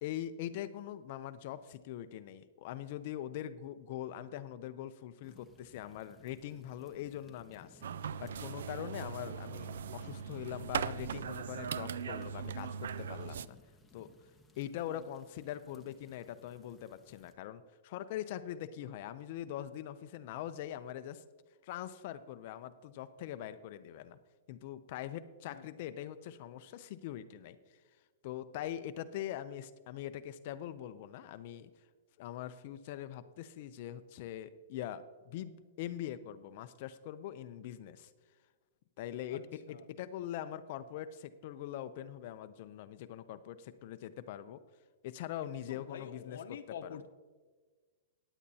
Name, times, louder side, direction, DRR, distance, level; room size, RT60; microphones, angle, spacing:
voice 1, 0.0-7.9 8.2-13.6 13.9-14.1 14.6-21.2 21.6-24.2 24.5-27.6 28.2-31.7 32.2-38.1 39.0-44.6 45.0-47.0, left 11 dB, 45° left, 12 dB, 0.5 m, -42 dB
sound 1, 5.2-17.3, left 2 dB, 5° left, 0.8 m, -60 dB
sound 2, 7.8-13.5, right 7 dB, 80° right, 0.3 m, -39 dB
voice 2, 25.4-25.8 39.3-39.8 45.4-47.1, left 8 dB, 75° left, 9 dB, 0.8 m, -48 dB
14.5 x 9.9 x 2.8 m, 1.4 s
hypercardioid pair, 160°, 0 cm